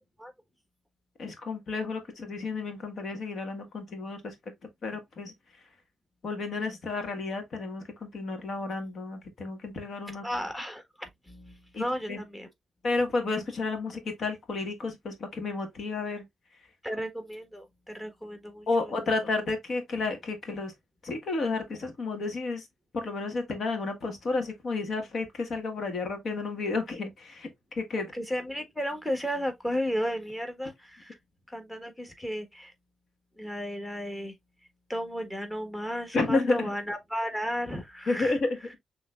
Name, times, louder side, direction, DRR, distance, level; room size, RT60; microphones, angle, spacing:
voice 1, 1.2-4.3 4.8-5.3 6.2-10.2 11.7-11.8 12.1-12.2 12.8-16.2 18.7-20.7 21.0-22.7 22.9-27.5 27.7-28.1 36.1-36.7 38.1-38.8, left 3 dB, 60° left, 1.6 m, -31 dB
voice 2, 10.2-12.5 16.8-19.2 27.9-31.2 31.5-32.7 33.3-34.4 34.9-38.7, equal, 10° left, 1.5 m, -34 dB
6.3 x 3.2 x 2.4 m
cardioid pair, 75°, 0 cm